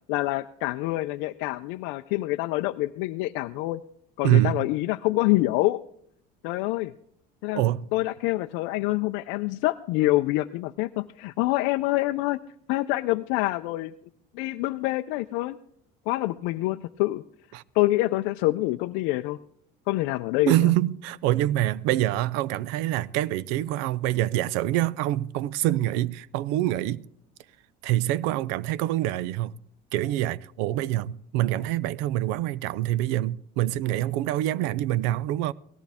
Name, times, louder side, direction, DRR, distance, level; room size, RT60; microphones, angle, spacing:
voice 1, 0.1-3.8 4.2-5.8 6.4-6.9 7.4-7.6 7.9-12.4 12.7-13.9 14.3-15.6 16.1-17.2 17.7-19.4 19.9-20.7, left 18 dB, 80° left, 0.4 m, -26 dB
voice 2, 4.2-4.7 7.5-7.8 17.5-17.6 20.5-27.0 27.8-29.5 29.9-35.5, right 14 dB, 90° right, 0.5 m, -25 dB
17.5 x 14.0 x 3.5 m
cardioid pair, 155°, 19 cm